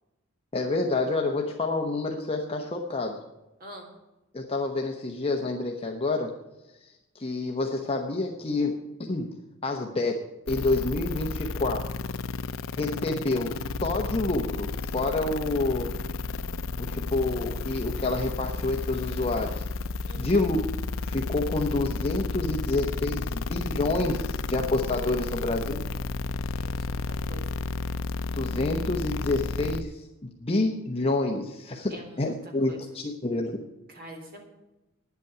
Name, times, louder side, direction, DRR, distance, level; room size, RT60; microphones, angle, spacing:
voice 1, 0.5-3.2 4.3-6.4 6.8-9.4 9.6-11.9 12.7-16.0 16.8-19.6 20.2-20.6 21.0-25.8 28.3-33.6, left 2 dB, 30° left, 1 dB, 1.0 m, -28 dB
sound 1, 10.5-29.8, left 3 dB, 70° left, 0.6 m, -32 dB
voice 2, 20.1-20.5 26.4-27.5 31.9-32.4 32.7-32.8 33.9-34.4, right 1 dB, 45° right, 2 dB, 3.5 m, -45 dB
10.5 x 8.3 x 9.5 m, 1.0 s
head